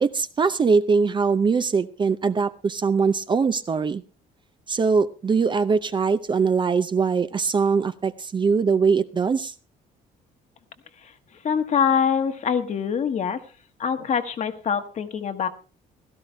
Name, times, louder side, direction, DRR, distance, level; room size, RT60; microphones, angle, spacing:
voice 1, 0.0-4.0 4.7-9.5, right 5 dB, 30° right, 12 dB, 0.6 m, -22 dB
voice 2, 11.4-13.4 13.8-15.5, left 7 dB, 45° left, 8 dB, 1.4 m, -24 dB
16.5 x 12.5 x 3.3 m, 0.35 s
cardioid pair, 110°, 17 cm